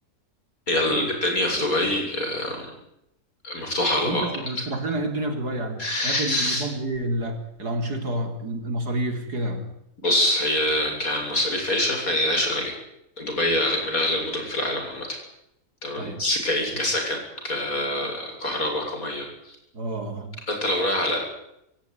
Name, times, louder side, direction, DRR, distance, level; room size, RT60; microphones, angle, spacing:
voice 1, 0.7-2.7 3.4-4.3 5.8-6.6 10.0-12.7 13.2-15.2 15.8-17.2 17.4-19.6 20.5-21.2, left 1 dB, 60° left, 2 dB, 8.0 m, -25 dB
voice 2, 4.0-9.7 16.0-16.2 19.7-20.3, right 1 dB, 90° right, 5 dB, 4.6 m, -29 dB
26.0 x 16.0 x 9.9 m, 0.81 s
omnidirectional pair, 1.6 m